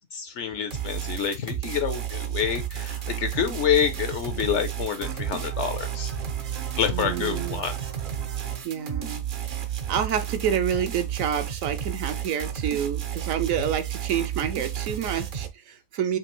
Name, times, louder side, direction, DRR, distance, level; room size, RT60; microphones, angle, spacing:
voice 1, 0.1-6.1 6.8-7.8, left 8 dB, 65° left, 0.8 m, -27 dB
sound 1, 0.7-15.5, right 10 dB, 55° right, 0.6 m, -32 dB
sound 2, 5.0-10.4, right 7 dB, 85° right, 1.4 m, -43 dB
voice 2, 6.9-7.6 8.6-9.2 9.5-9.6 9.9-16.2, right 8 dB, 70° right, 0.9 m, -28 dB
5.1 x 2.8 x 3.0 m
omnidirectional pair, 1.6 m